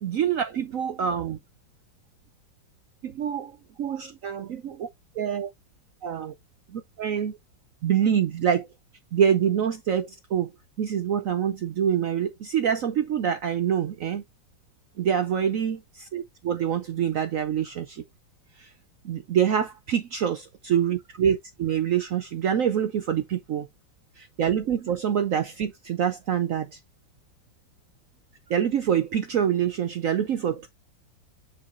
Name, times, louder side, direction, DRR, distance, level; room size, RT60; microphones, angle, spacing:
voice 1, 0.0-1.4 3.0-4.9 5.2-5.5 6.0-6.3 6.7-7.4 7.8-8.7 9.1-10.5 10.8-14.2 15.0-18.0 18.6-18.7 19.0-23.7 24.2-26.8 28.5-30.7, right 8 dB, 70° right, 0.7 m, -26 dB
6.9 x 5.6 x 2.5 m
omnidirectional pair, 2.1 m